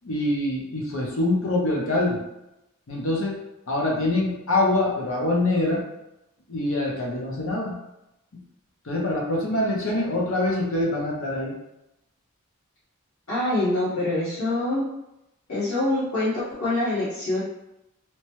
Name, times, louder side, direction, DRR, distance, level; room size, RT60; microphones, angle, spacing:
voice 1, 0.0-2.2 2.9-3.4 3.7-5.8 6.5-7.8 8.8-11.5, left 2 dB, 65° left, -3 dB, 0.7 m, -24 dB
voice 2, 13.3-14.9 15.5-17.4, left 2 dB, 80° left, -12 dB, 1.2 m, -25 dB
2.9 x 2.2 x 3.0 m, 0.90 s
head